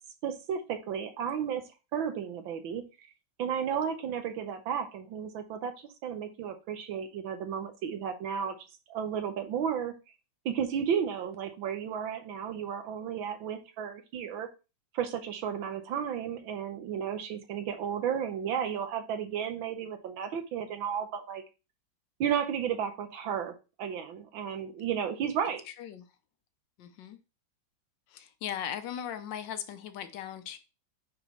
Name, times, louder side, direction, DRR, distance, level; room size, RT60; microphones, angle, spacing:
voice 1, 0.2-1.6 1.9-2.8 3.4-8.5 8.9-9.9 10.4-14.5 14.9-21.4 22.2-25.6, right 8 dB, 85° right, 7 dB, 1.7 m, -33 dB
voice 2, 26.8-27.2 28.1-30.6, left 9 dB, 75° left, 10 dB, 1.3 m, -38 dB
8.7 x 3.6 x 3.1 m, 0.30 s
omnidirectional pair, 2.1 m